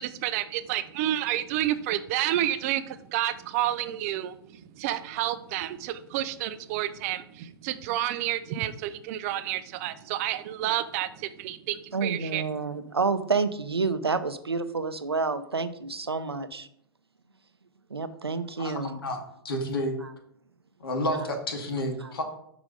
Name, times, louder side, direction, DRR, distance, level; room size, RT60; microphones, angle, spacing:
voice 1, 0.0-4.3 4.8-12.4, right 13 dB, 40° right, 13 dB, 0.5 m, -30 dB
voice 2, 11.9-16.7 17.9-19.0 20.0-20.1 22.0-22.1, right 4 dB, 85° right, 12 dB, 0.6 m, -29 dB
voice 3, 18.6-19.2 19.4-20.0 20.8-22.2, left 1 dB, 65° left, 3 dB, 1.9 m, -30 dB
6.4 x 4.9 x 5.0 m, 0.71 s
figure-of-eight pair, 110°, 13 cm